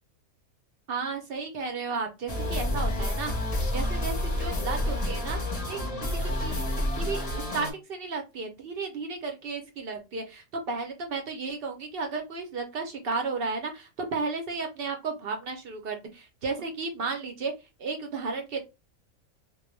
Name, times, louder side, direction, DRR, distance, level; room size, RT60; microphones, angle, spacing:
voice 1, 0.9-3.3 3.7-5.4 5.7-5.8 6.2-6.6 6.9-7.2 7.5-17.5 17.8-18.6, right 4 dB, 65° right, 4 dB, 0.6 m, -33 dB
sound 1, 2.3-7.7, left 1 dB, 40° left, 0.6 m, -29 dB
2.3 x 2.2 x 3.1 m, 0.25 s
omnidirectional pair, 1.4 m